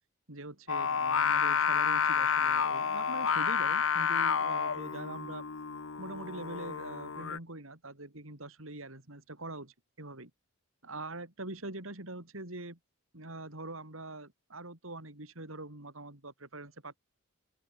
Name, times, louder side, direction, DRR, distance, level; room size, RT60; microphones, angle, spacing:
voice 1, 0.3-5.4 6.0-10.3 10.8-12.8 13.1-17.0, right 2 dB, 75° right, 4.7 m, -43 dB
Singing, 0.7-7.4, left 6 dB, 75° left, 0.9 m, -30 dB
open air
head